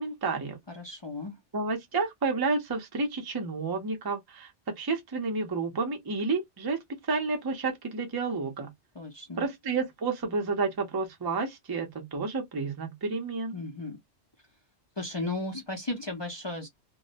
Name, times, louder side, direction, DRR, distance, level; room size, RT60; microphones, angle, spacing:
voice 1, 0.0-0.6 1.5-8.7 9.4-13.5, right 4 dB, 30° right, 0.4 m, -30 dB
voice 2, 0.7-1.4 9.0-9.5 13.5-14.0 15.0-16.7, left 2 dB, 40° left, 0.3 m, -35 dB
2.2 x 2.0 x 2.7 m
omnidirectional pair, 1.2 m